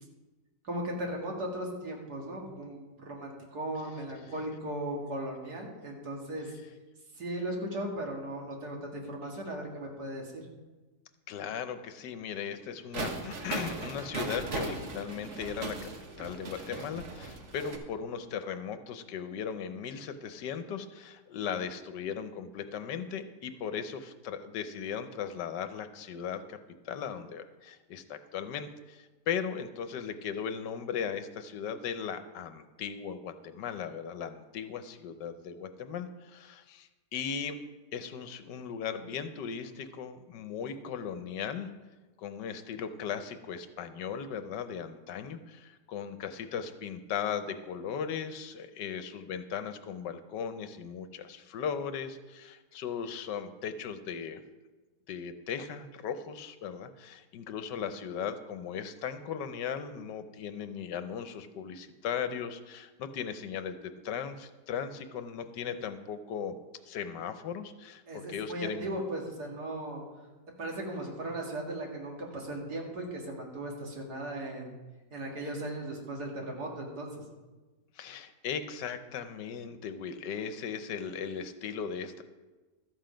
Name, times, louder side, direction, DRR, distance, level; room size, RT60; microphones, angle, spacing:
voice 1, 0.6-6.5 7.2-10.4 68.1-70.0 70.6-74.7 75.1-77.1, right 1 dB, 60° right, 0 dB, 2.4 m, -37 dB
voice 2, 11.3-15.9 16.2-26.6 26.8-37.6 37.9-41.7 42.2-54.4 55.1-66.6 66.8-69.0 77.9-82.2, left 7 dB, 75° left, 10 dB, 1.4 m, -37 dB
sound 1, 12.9-17.8, right 3 dB, 45° right, 1.3 m, -38 dB
13.0 x 7.8 x 5.1 m, 1.2 s
omnidirectional pair, 1.9 m